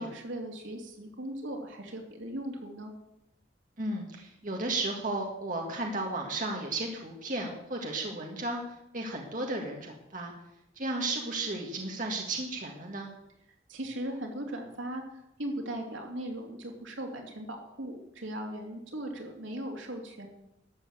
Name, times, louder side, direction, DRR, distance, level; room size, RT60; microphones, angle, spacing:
voice 1, 0.0-2.9 13.7-20.3, right 1 dB, 85° right, 2 dB, 2.9 m, -38 dB
voice 2, 3.8-10.3 10.8-13.1, right 2 dB, 45° right, 0 dB, 1.8 m, -34 dB
12.5 x 7.3 x 8.3 m, 0.85 s
head